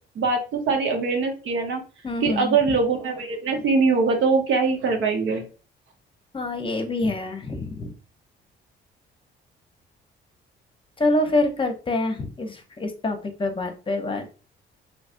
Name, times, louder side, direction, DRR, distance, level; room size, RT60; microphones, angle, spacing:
voice 1, 0.1-1.8 2.2-5.4, right 4 dB, 80° right, 2 dB, 1.0 m, -22 dB
voice 2, 2.0-2.6 6.3-7.9 11.0-14.4, left 2 dB, 25° left, 5 dB, 0.8 m, -26 dB
3.1 x 3.1 x 2.6 m, 0.34 s
cardioid pair, 90°, 20 cm